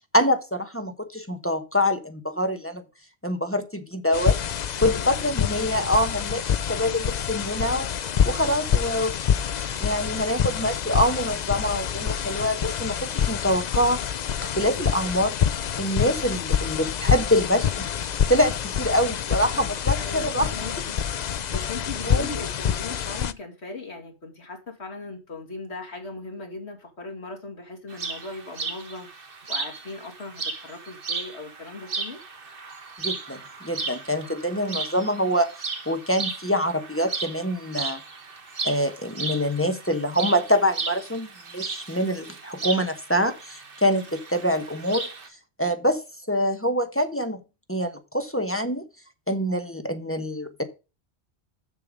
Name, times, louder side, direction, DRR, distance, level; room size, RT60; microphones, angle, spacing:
voice 1, 0.1-2.8 3.2-6.4 6.7-7.9 8.3-9.1 9.8-15.3 15.8-17.9 18.3-20.5 22.0-22.3 33.0-35.5 35.9-38.0 38.6-41.3 41.5-45.1 45.6-46.0 46.3-47.4 47.7-48.8 49.3-50.6, equal, 10° left, 1.1 m, -25 dB
sound 1, 4.1-23.3, left 8 dB, 50° left, 0.5 m, -27 dB
voice 2, 4.7-5.1 20.0-21.0 21.2-29.1 29.5-32.2, left 3 dB, 80° left, 2.7 m, -38 dB
sound 2, 27.9-45.3, right 4 dB, 55° right, 1.5 m, -35 dB
7.2 x 6.9 x 5.0 m
omnidirectional pair, 1.1 m